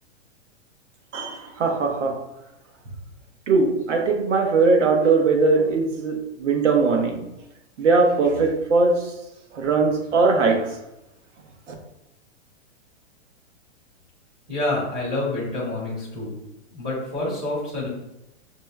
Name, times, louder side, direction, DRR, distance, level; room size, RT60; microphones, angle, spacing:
voice 1, 1.1-2.2 3.5-7.2 7.8-9.1 9.5-10.8, right 4 dB, 85° right, 3 dB, 1.0 m, -20 dB
voice 2, 14.5-16.4 16.7-17.9, left 2 dB, 10° right, -9 dB, 0.3 m, -27 dB
6.3 x 2.1 x 2.3 m, 0.90 s
hypercardioid pair, 170°, 35 cm